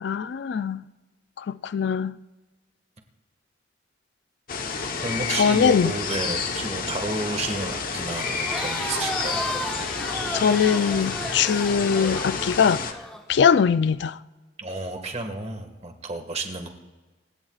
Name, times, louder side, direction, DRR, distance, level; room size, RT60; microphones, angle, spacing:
voice 1, 0.0-0.8 1.4-2.1 5.3-5.9 10.3-12.8 13.3-14.2, left 6 dB, 65° left, 0.4 m, -21 dB
sound 1, 4.5-12.9, left 5 dB, 50° left, 1.1 m, -30 dB
voice 2, 5.0-9.4 14.6-16.7, right 2 dB, 35° right, 1.8 m, -31 dB
Crowd, 8.2-13.2, equal, 5° left, 1.3 m, -34 dB
27.0 x 16.5 x 2.4 m
head